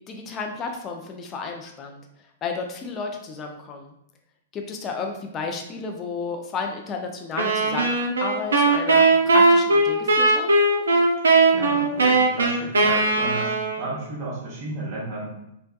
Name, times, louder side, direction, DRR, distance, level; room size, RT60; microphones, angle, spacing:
voice 1, 0.1-2.0 2.4-3.9 4.5-7.9 8.2-10.5, left 4 dB, 25° left, 3 dB, 0.4 m, -32 dB
sound 1, 7.4-14.0, right 3 dB, 90° right, 0.3 m, -19 dB
voice 2, 11.5-15.3, right 2 dB, 40° right, -6 dB, 0.9 m, -33 dB
2.6 x 2.2 x 2.2 m, 0.80 s
hypercardioid pair, 125°, 0 cm